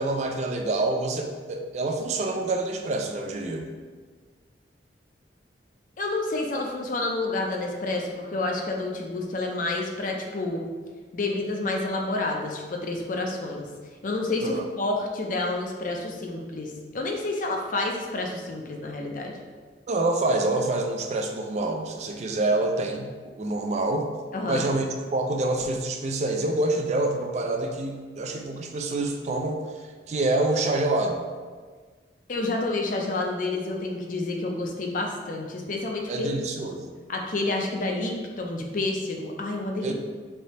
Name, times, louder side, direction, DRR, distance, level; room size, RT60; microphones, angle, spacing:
voice 1, 0.0-3.7 14.4-14.6 19.9-24.1 24.5-31.2 36.1-36.9 39.8-39.9, right 2 dB, 40° right, 3 dB, 0.3 m, -27 dB
voice 2, 6.0-10.6 11.1-13.7 14.0-19.4 24.3-24.7 32.3-36.3 37.1-39.9, left 2 dB, 45° left, 1 dB, 0.5 m, -29 dB
3.4 x 2.7 x 4.1 m, 1.5 s
head